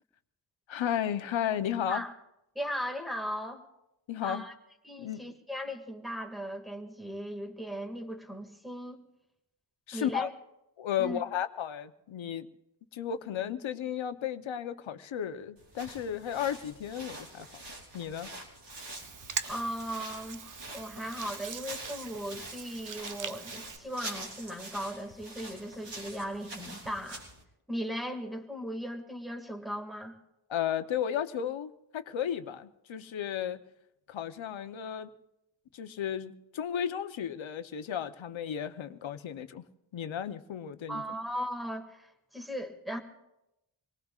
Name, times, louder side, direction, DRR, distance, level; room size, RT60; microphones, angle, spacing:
voice 1, 0.7-2.1 4.1-4.4 5.0-5.3 9.9-10.3 10.8-12.5 12.9-17.6 17.9-18.3 30.5-33.6 34.1-35.1 35.7-39.6 39.9-41.0, left 9 dB, 85° left, 10 dB, 0.9 m, -34 dB
voice 2, 2.6-3.6 4.2-4.5 4.8-9.0 9.9-10.3 11.0-11.2 19.5-20.4 20.7-27.2 27.7-30.2 40.9-43.0, equal, ahead, 3 dB, 2.1 m, -37 dB
sound 1, 15.6-27.4, right 1 dB, 65° right, 4.2 m, -45 dB
Hands, 18.7-23.8, right 6 dB, 40° right, 0.7 m, -42 dB
27.0 x 19.0 x 2.4 m, 0.86 s
cardioid pair, 75°, 46 cm